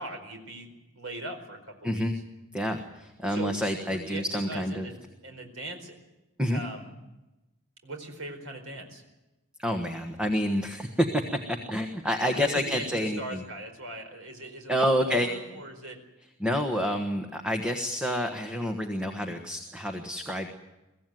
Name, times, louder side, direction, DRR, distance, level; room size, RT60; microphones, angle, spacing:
voice 1, 0.0-2.0 3.3-5.0 5.2-6.0 6.5-6.9 7.8-9.0 12.3-16.0, right 1 dB, 70° right, 5 dB, 4.6 m, -40 dB
voice 2, 1.8-2.1 2.5-4.9 6.4-6.6 9.6-11.2 11.5-13.4 14.7-15.3 16.4-20.5, equal, 5° right, 4 dB, 1.3 m, -28 dB
23.5 x 15.5 x 9.3 m, 1.0 s
head